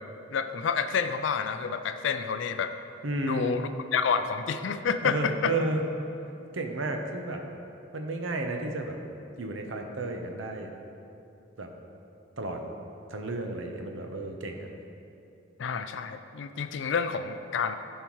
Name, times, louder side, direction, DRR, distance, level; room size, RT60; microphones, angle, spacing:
voice 1, 0.3-2.7 3.3-5.5 15.6-17.8, left 6 dB, 65° left, 9 dB, 0.4 m, -29 dB
voice 2, 3.0-3.6 5.0-5.8 6.5-7.4 7.9-9.0 9.4-10.7 11.6-11.7 12.4-12.6 13.1-14.7, right 2 dB, 80° right, 4 dB, 0.8 m, -32 dB
12.5 x 5.6 x 3.1 m, 2.7 s
head